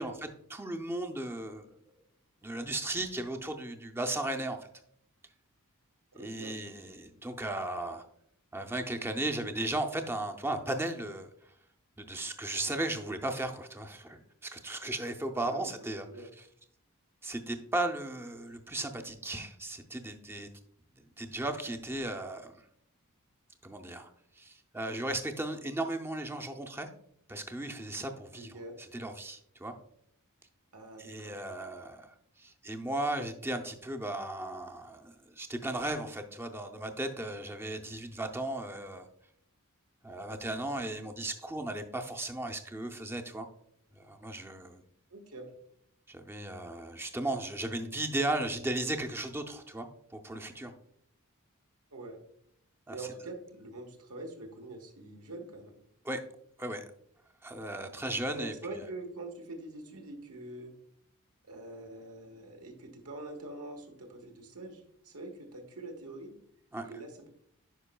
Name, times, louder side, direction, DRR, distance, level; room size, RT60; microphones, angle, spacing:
voice 1, 0.0-1.8 2.4-4.7 6.1-8.1 8.5-11.3 12.0-16.1 17.2-20.5 21.0-22.6 23.6-24.1 24.4-26.9 27.3-29.7 31.0-39.1 40.0-43.5 43.9-44.8 46.1-50.7 52.9-53.1 56.0-56.2 56.6-56.8 57.4-58.5 66.7-66.9, right 1 dB, 10° right, 5 dB, 0.5 m, -36 dB
voice 2, 6.1-6.5 15.3-16.3 28.4-28.7 30.7-31.3 45.1-45.5 51.9-52.2 52.9-55.7 58.3-60.7 61.5-66.3 66.8-67.3, right 2 dB, 80° right, 3 dB, 1.3 m, -44 dB
10.0 x 5.2 x 2.2 m, 0.69 s
head